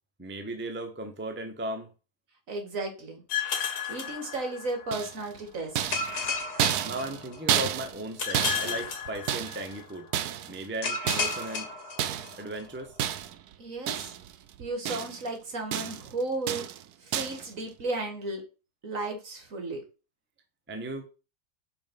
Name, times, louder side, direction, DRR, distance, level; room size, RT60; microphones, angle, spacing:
voice 1, 0.2-1.9 6.8-10.1 10.5-11.7 12.4-12.9 20.7-21.1, right 1 dB, 10° right, 0.8 m, -36 dB
voice 2, 2.5-3.2 3.9-6.0 13.6-14.1 14.6-16.6 17.0-18.4 18.8-19.8, right 2 dB, 55° right, 2.0 m, -34 dB
sound 1, 3.3-4.9 5.9-7.6 8.2-9.8 10.8-12.6, left 5 dB, 75° left, 1.7 m, -33 dB
sound 2, 4.9-5.4 5.8-8.1 8.3-9.8 10.1-10.7 11.1-11.5 12.0-12.4 13.0-13.5 13.9-14.3 14.6-15.3 15.7-16.1 16.5-16.8 17.1-17.5, right 11 dB, 75° right, 1.1 m, -31 dB
5.8 x 4.0 x 5.3 m
omnidirectional pair, 1.7 m